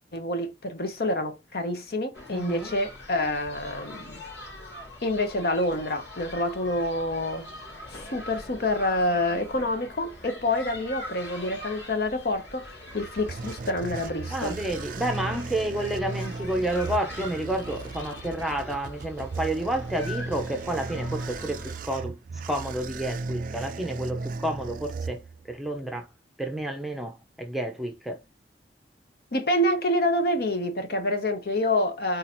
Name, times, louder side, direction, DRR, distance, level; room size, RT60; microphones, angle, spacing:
voice 1, 0.1-4.2 5.0-7.5 7.9-14.6 29.3-32.2, left 1 dB, 60° left, 0.9 m, -27 dB
sound 1, 2.1-21.8, left 1 dB, 85° left, 2.5 m, -43 dB
voice 2, 2.3-2.7 14.3-22.2 22.5-25.2 25.5-26.1 26.4-28.2, right 1 dB, ahead, 0.7 m, -30 dB
sound 2, 12.8-25.7, right 3 dB, 50° right, 0.3 m, -36 dB
4.0 x 2.8 x 4.3 m
head